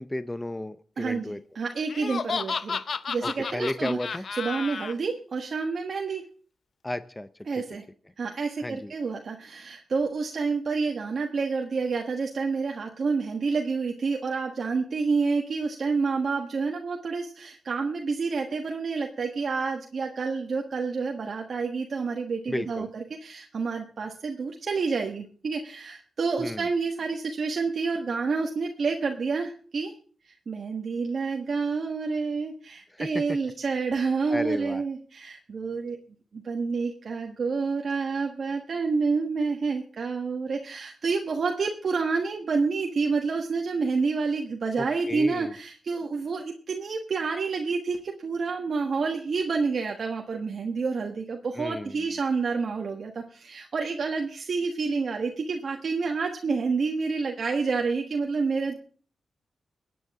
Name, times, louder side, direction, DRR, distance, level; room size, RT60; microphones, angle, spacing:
voice 1, 0.0-1.4 3.2-4.2 6.8-7.3 8.6-8.9 22.5-22.9 26.4-26.7 32.9-33.4 34.3-34.8 44.8-45.5 51.5-52.0, left 1 dB, 10° left, 13 dB, 0.6 m, -33 dB
voice 2, 1.0-2.8 3.1-4.0 4.3-6.2 7.5-7.8 8.2-29.9 30.2-36.0 36.3-58.8, right 4 dB, 55° right, 2 dB, 1.4 m, -29 dB
Laughter, 1.9-4.9, left 5 dB, 55° left, 0.7 m, -32 dB
23.5 x 9.3 x 3.6 m, 0.43 s
wide cardioid pair, 135°, 0 cm